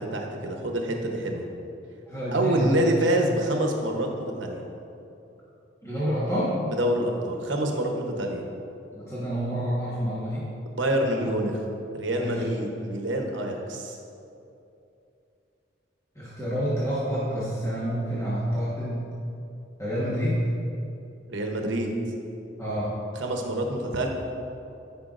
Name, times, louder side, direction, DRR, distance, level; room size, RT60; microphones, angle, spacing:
voice 1, 0.0-1.4 2.3-4.6 6.7-8.4 10.7-11.6 11.9-14.0 21.3-21.9 23.1-24.1, right 1 dB, 75° right, 2 dB, 0.9 m, -26 dB
voice 2, 2.1-2.8 5.8-6.5 8.9-10.5 12.1-12.3 16.2-19.0 19.8-20.4 22.6-22.9, equal, 15° left, -9 dB, 1.3 m, -28 dB
13.0 x 5.6 x 2.5 m, 2.7 s
head